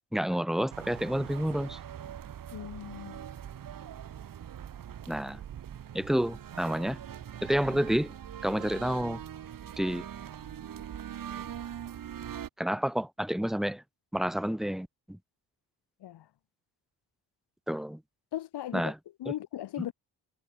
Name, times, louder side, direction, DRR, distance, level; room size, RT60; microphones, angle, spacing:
voice 1, 0.1-1.8 5.1-5.4 5.9-7.0 7.4-8.1 8.4-9.2 9.8-10.1 12.6-13.8 14.1-15.2 17.7-18.0 18.7-19.0 19.3-19.4, equal, ahead, 1.2 m, -29 dB
sound 1, 0.7-12.5, right 9 dB, 50° right, 6.0 m, -42 dB
voice 2, 2.5-3.2 16.0-16.2 18.3-18.9 19.2-19.9, left 12 dB, 65° left, 3.3 m, -37 dB
cardioid pair, 170°, 43 cm